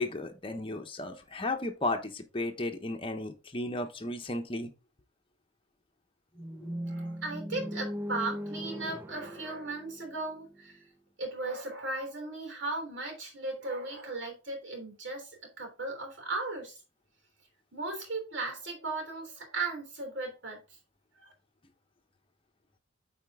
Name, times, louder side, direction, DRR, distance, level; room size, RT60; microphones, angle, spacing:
voice 1, 0.0-4.7 6.6-6.7, left 2 dB, 25° left, 1.0 m, -34 dB
sound 1, 6.4-10.5, equal, 10° right, 0.5 m, -38 dB
voice 2, 6.8-10.8 11.2-16.8 17.7-20.6 21.2-21.3, right 3 dB, 65° right, 3.3 m, -37 dB
8.9 x 4.3 x 3.7 m
head